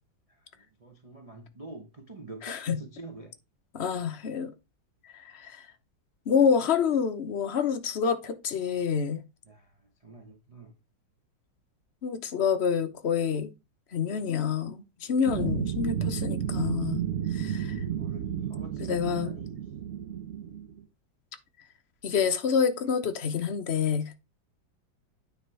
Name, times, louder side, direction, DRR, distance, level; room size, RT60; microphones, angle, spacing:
voice 1, 0.3-3.3 9.5-10.7 18.0-19.5, right 3 dB, 30° right, 0.7 m, -46 dB
voice 2, 2.4-2.8 3.7-4.5 5.0-5.7 6.3-9.2 12.0-13.5 13.9-17.0 17.3-17.8 18.8-19.3 22.0-24.2, left 6 dB, 50° left, 0.9 m, -27 dB
sound 1, 15.3-20.8, right 9 dB, 55° right, 1.1 m, -32 dB
9.4 x 3.6 x 4.7 m
omnidirectional pair, 2.0 m